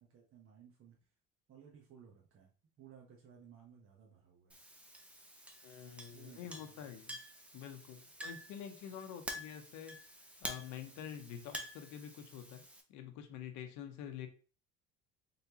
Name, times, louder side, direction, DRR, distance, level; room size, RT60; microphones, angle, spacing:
voice 1, 0.0-1.0 1.5-2.5 2.8-4.6 6.1-7.0, right 8 dB, 45° right, -1 dB, 1.0 m, -59 dB
Chink clink, 4.5-12.8, equal, 5° right, 0.7 m, -49 dB
voice 2, 5.6-7.2 7.5-10.0 10.4-12.6 12.9-14.3, left 9 dB, 70° left, 6 dB, 0.9 m, -47 dB
4.1 x 3.3 x 2.8 m, 0.38 s
supercardioid pair, 100°, 30 cm